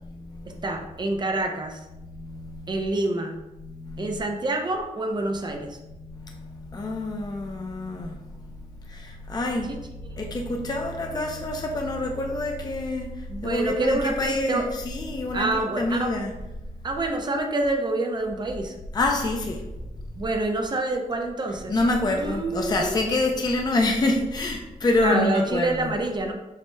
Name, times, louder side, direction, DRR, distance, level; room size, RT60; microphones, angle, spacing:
voice 1, 0.0-0.6 2.0-2.8 3.6-4.2 6.0-8.4 8.9-9.7 10.1-13.1 13.4-16.3 18.9-19.6 21.7-25.9, left 2 dB, 30° left, 2 dB, 0.4 m, -27 dB
voice 2, 0.6-1.8 2.7-3.4 4.0-5.8 9.7-9.8 10.2-10.8 11.1-11.2 13.3-14.7 15.3-16.2 16.8-18.7 20.2-21.8 22.1-23.0 25.0-26.3, right 2 dB, 30° right, 3 dB, 0.5 m, -27 dB
7.2 x 2.8 x 2.2 m, 0.98 s
wide cardioid pair, 150°, 14 cm